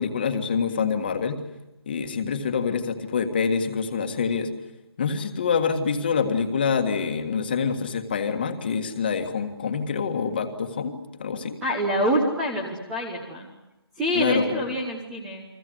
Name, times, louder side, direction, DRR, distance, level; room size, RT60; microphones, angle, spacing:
voice 1, 0.0-1.4 1.9-4.5 5.0-11.6 14.2-14.7, left 6 dB, 20° left, 7 dB, 1.8 m, -26 dB
voice 2, 11.6-13.5 14.0-15.4, equal, 5° right, 1 dB, 1.0 m, -26 dB
30.0 x 23.0 x 7.9 m, 0.95 s
hypercardioid pair, 180°, 14 cm